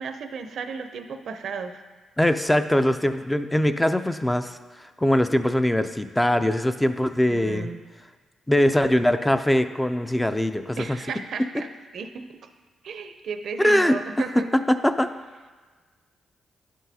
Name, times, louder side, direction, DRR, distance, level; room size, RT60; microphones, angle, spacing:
voice 1, 0.0-1.8 7.3-7.8 10.8-11.7 11.9-12.5 12.8-14.5, right 5 dB, 70° right, 8 dB, 0.5 m, -34 dB
voice 2, 2.2-4.6 5.0-7.7 8.5-11.0 13.6-14.0 14.7-15.1, left 1 dB, 10° left, 9 dB, 0.3 m, -22 dB
10.0 x 6.2 x 2.7 m, 1.4 s
cardioid pair, 80°, 0 cm